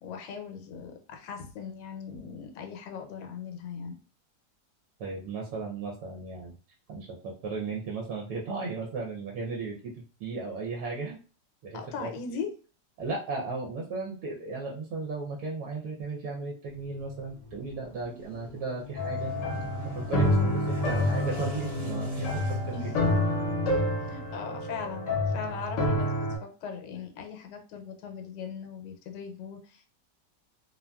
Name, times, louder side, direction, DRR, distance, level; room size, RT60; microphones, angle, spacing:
voice 1, 0.0-4.0 11.7-12.5 22.7-23.0 24.0-29.9, left 6 dB, 75° left, 4 dB, 1.2 m, -39 dB
voice 2, 5.0-6.5 6.9-9.9 10.2-11.2 11.6-12.1 13.0-19.3 19.9-22.7, right 3 dB, 65° right, -2 dB, 1.0 m, -35 dB
sound 1, 16.7-24.3, equal, 50° right, 0.4 m, -39 dB
sound 2, 19.0-26.4, left 1 dB, 60° left, 0.9 m, -28 dB
2.7 x 2.5 x 2.2 m, 0.37 s
omnidirectional pair, 1.9 m